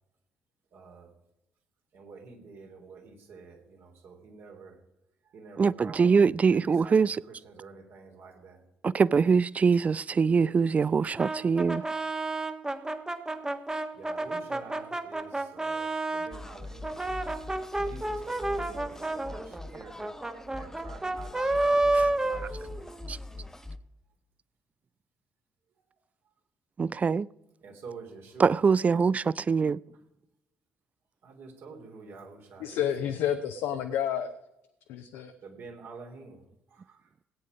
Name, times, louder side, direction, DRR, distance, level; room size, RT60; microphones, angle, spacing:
voice 1, 0.7-1.1 1.9-4.8 5.2-6.1 6.5-7.0 7.3-8.6 13.9-17.0 17.8-20.1 20.5-22.9 27.6-28.6 31.2-33.3 35.4-36.4, right 4 dB, 55° right, 3.2 m, -48 dB
voice 2, 5.6-7.2 8.8-11.9 21.9-22.1 23.1-23.2 26.8-27.3 28.4-29.8, right 5 dB, 30° right, 0.4 m, -23 dB
Brass instrument, 11.2-16.3 16.8-23.1, right 2 dB, 15° right, 1.4 m, -30 dB
sound 1, 16.3-23.8, left 2 dB, 10° left, 1.0 m, -42 dB
voice 3, 32.6-34.3 34.9-35.3, left 9 dB, 65° left, 0.9 m, -30 dB
17.5 x 9.2 x 5.0 m
figure-of-eight pair, 45°, 5 cm